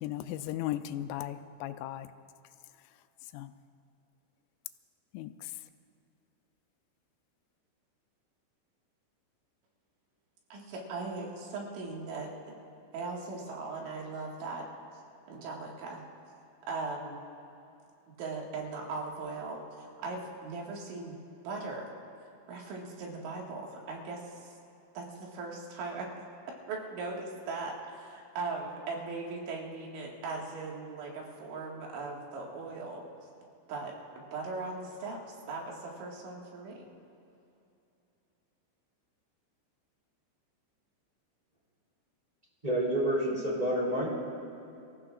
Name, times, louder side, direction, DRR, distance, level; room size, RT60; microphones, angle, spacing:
voice 1, 0.0-2.1 3.3-3.5 5.1-5.3, left 13 dB, 90° left, 10 dB, 3.2 m, -36 dB
voice 2, 10.5-12.3 12.9-14.6 15.3-16.0 16.7-17.2 18.2-21.2 21.4-21.9 22.5-24.6 25.0-26.1 26.7-33.0 33.7-33.9 34.3-36.9, right 3 dB, 75° right, -2 dB, 4.1 m, -39 dB
voice 3, 42.6-44.1, right 1 dB, 10° right, -5 dB, 2.6 m, -28 dB
28.5 x 15.5 x 2.5 m, 2.7 s
omnidirectional pair, 5.6 m